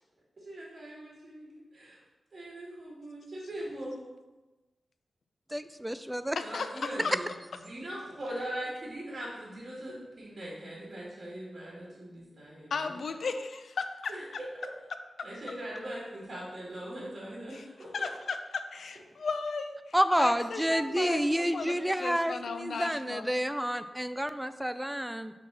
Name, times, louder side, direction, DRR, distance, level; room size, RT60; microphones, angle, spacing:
voice 1, 0.4-2.0 2.3-3.9 6.4-13.0 14.1-14.2 15.2-18.1, right 1 dB, 40° right, -5 dB, 2.2 m, -41 dB
voice 2, 5.5-6.4 19.9-25.3, equal, 5° right, 11 dB, 0.3 m, -29 dB
voice 3, 6.4-7.1 12.7-14.1 15.2-15.3 17.5-17.6 17.9-23.3, left 4 dB, 75° left, 8 dB, 0.5 m, -35 dB
6.0 x 4.2 x 5.7 m, 1.2 s
wide cardioid pair, 110°, 0 cm